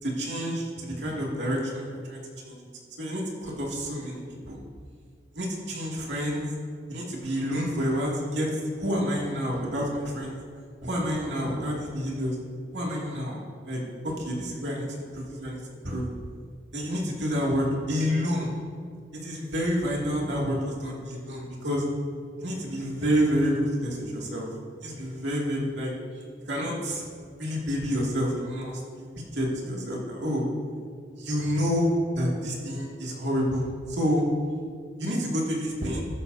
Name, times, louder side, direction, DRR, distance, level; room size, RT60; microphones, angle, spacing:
voice 1, 0.0-2.6 3.0-4.6 5.3-6.4 6.9-10.4 10.8-12.4 12.7-13.4 13.6-15.6 15.8-16.0 16.7-18.5 19.2-21.8 22.4-24.5 24.8-25.9 26.5-27.0 27.4-30.4 31.2-34.2 35.0-36.0, equal, 80° right, -3 dB, 2.4 m, -29 dB
13.5 x 12.0 x 2.7 m, 2.1 s
head